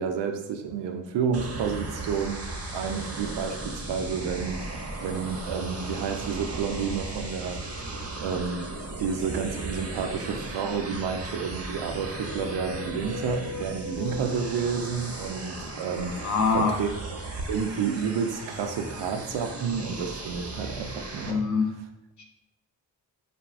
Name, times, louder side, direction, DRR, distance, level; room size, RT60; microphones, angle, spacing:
voice 1, 0.0-8.7 9.0-17.2 17.5-21.4, right 6 dB, 70° right, 6 dB, 0.5 m, -30 dB
sound 1, 1.3-21.3, right 2 dB, 30° right, 0.7 m, -36 dB
sound 2, 9.6-10.8 11.7-15.5, left 5 dB, 80° left, 0.9 m, -42 dB
voice 2, 16.2-16.7 21.3-21.7 22.2-22.3, left 4 dB, 40° left, 2 dB, 0.6 m, -24 dB
3.4 x 2.2 x 2.4 m, 0.87 s
supercardioid pair, 45°, 46 cm